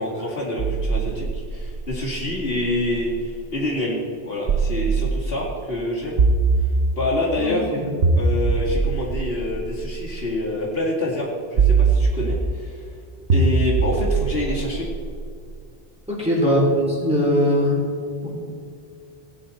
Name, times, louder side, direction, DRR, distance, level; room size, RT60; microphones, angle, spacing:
voice 1, 0.0-6.2 7.0-7.7 8.2-12.8 13.3-14.9 16.4-16.5, left 1 dB, 65° left, -4 dB, 2.5 m, -26 dB
sound 1, 0.6-3.4 4.5-5.5 6.2-7.3 8.0-10.3 11.6-12.7 13.3-15.5, right 4 dB, 75° right, 1.0 m, -22 dB
voice 2, 7.4-7.9 16.1-16.6 17.0-17.8 18.2-18.3, equal, 5° right, -5 dB, 3.6 m, -21 dB
17.5 x 9.2 x 4.3 m, 2.2 s
omnidirectional pair, 1.1 m